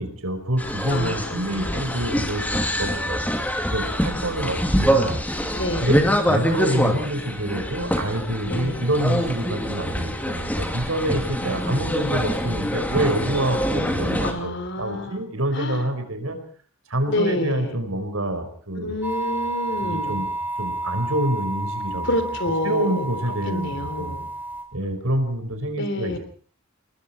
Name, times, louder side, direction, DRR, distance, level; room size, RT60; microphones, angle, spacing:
voice 1, 0.0-3.2 3.7-5.2 5.8-16.4 16.9-19.0 19.7-20.3 20.6-22.2 22.6-24.2 24.7-26.2, right 1 dB, 85° right, 7 dB, 5.0 m, -27 dB
sound 1, 0.6-14.3, equal, 10° left, 2.6 m, -25 dB
voice 2, 0.9-1.8 5.5-6.0 8.5-8.9 11.4-11.9 14.2-15.3 15.5-15.9 17.1-17.8 18.8-20.2 22.0-23.1 23.5-24.3 25.8-26.2, left 1 dB, 55° left, 10 dB, 3.6 m, -28 dB
sound 2, 19.0-24.6, right 2 dB, 10° right, 4.3 m, -30 dB
30.0 x 19.5 x 4.5 m, 0.43 s
head